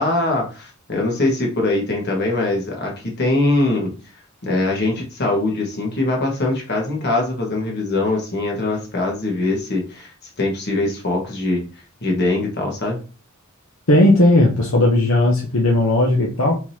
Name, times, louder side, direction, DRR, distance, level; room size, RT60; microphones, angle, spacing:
voice 1, 0.0-3.9 4.4-10.1 10.4-11.6 12.0-13.0, left 2 dB, 55° left, 0 dB, 1.6 m, -22 dB
voice 2, 13.9-16.6, left 1 dB, 75° left, -1 dB, 0.9 m, -16 dB
4.6 x 3.8 x 2.8 m, 0.35 s
head